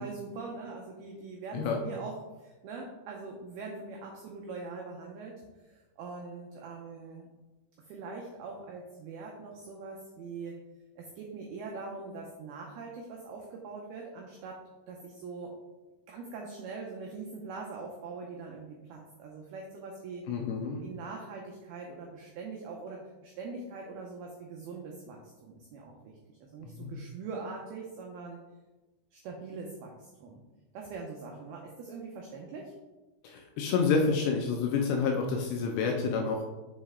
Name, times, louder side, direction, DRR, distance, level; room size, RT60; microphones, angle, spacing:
voice 1, 0.0-7.3 7.9-10.6 11.0-14.6 14.9-15.5 16.1-20.2 20.8-28.4 29.1-30.4 30.7-32.7, right 4 dB, 90° right, 0 dB, 2.2 m, -42 dB
voice 2, 20.3-20.8 26.6-26.9 33.2-36.4, left 5 dB, 80° left, 2 dB, 2.6 m, -29 dB
7.0 x 5.3 x 3.6 m, 1.1 s
omnidirectional pair, 5.5 m